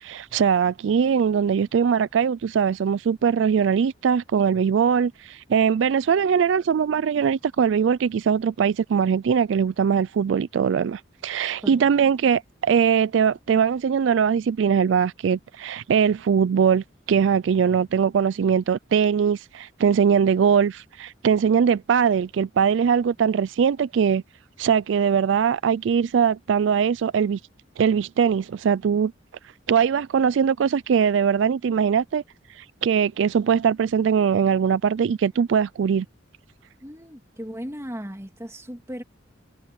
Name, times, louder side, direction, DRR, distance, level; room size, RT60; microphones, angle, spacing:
voice 1, 0.0-24.2 24.6-27.4 27.8-29.1 29.7-32.2 32.6-36.1, right 7 dB, 75° right, 0.4 m, -21 dB
voice 2, 36.8-39.0, equal, 15° right, 2.6 m, -36 dB
head